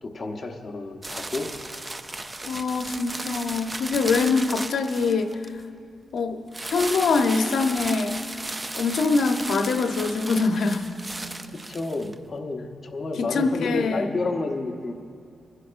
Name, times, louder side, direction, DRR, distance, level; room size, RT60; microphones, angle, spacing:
voice 1, 0.0-1.5 11.5-14.9, left 2 dB, 25° left, 1 dB, 0.9 m, -30 dB
sound 1, 1.0-5.6 6.5-12.1, right 2 dB, 15° right, 0.3 m, -35 dB
voice 2, 2.5-5.4 6.1-6.4 6.7-8.2 8.8-10.9 13.2-14.1, left 4 dB, 70° left, 6 dB, 0.8 m, -24 dB
27.5 x 11.5 x 2.5 m, 2.4 s
wide cardioid pair, 160°, 0 cm